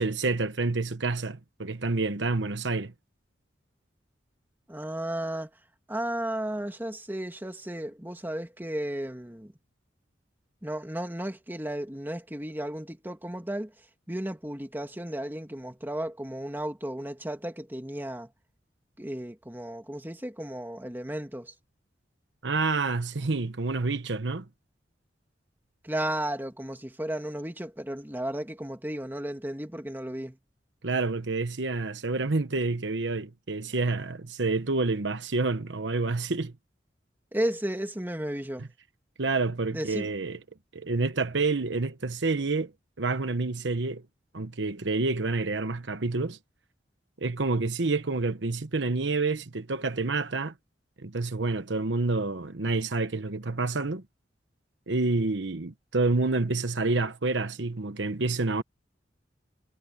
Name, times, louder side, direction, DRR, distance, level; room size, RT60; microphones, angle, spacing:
voice 1, 0.0-2.9 22.4-24.5 30.8-36.5 39.2-40.4 40.7-42.7 43.0-44.0 44.3-46.4 47.2-50.5 51.0-54.0 54.9-58.6, right 3 dB, 75° right, 1.1 m, -28 dB
voice 2, 4.7-5.5 5.9-9.5 10.6-18.3 19.0-21.5 25.8-30.4 37.3-38.7 39.7-40.1, right 1 dB, 10° right, 2.4 m, -34 dB
head